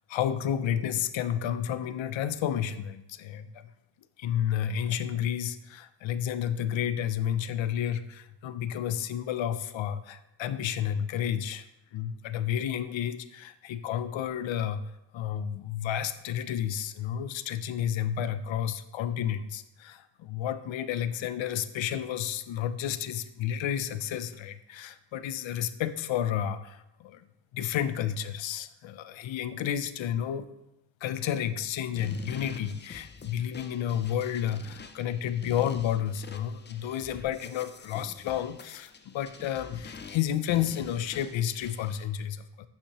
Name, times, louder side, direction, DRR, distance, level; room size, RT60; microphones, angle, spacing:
voice 1, 0.1-3.7 4.2-11.6 11.9-14.8 15.1-27.2 27.5-30.5 31.0-42.7, left 10 dB, 80° left, 12 dB, 0.6 m, -31 dB
sound 1, 32.0-42.1, left 5 dB, 25° left, 0.5 m, -47 dB
10.0 x 5.8 x 3.0 m, 0.87 s
wide cardioid pair, 130°, 45 cm